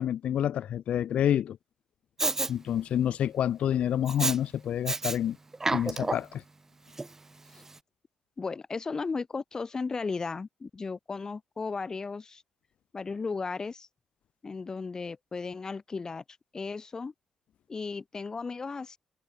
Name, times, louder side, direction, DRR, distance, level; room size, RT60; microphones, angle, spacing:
voice 1, 0.0-1.6 2.5-5.4 5.7-6.4, left 10 dB, 70° left, 2.7 m, -28 dB
Respiratory sounds, 2.2-2.5 4.1-4.4 4.9-5.2 5.5-6.3 7.0-7.1, right 3 dB, 20° right, 4.6 m, -29 dB
voice 2, 8.4-12.4 12.9-13.9 14.4-16.2 16.5-17.1 17.7-19.0, left 4 dB, 30° left, 1.9 m, -35 dB
cardioid pair, 100°, 2 cm